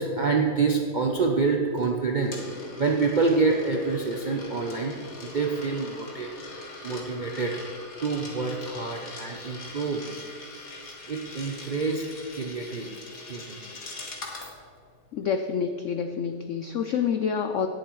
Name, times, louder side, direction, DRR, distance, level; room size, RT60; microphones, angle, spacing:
voice 1, 0.0-4.9 5.2-6.3 6.8-7.6 8.0-10.1 11.1-12.1 12.3-12.9 13.3-13.6, right 4 dB, 60° right, 0 dB, 0.5 m, -27 dB
Coin (dropping), 1.8-14.5, left 3 dB, 55° left, 2.0 m, -42 dB
voice 2, 15.1-17.7, left 7 dB, 80° left, 7 dB, 0.6 m, -27 dB
17.5 x 7.6 x 3.1 m, 2.3 s
omnidirectional pair, 1.8 m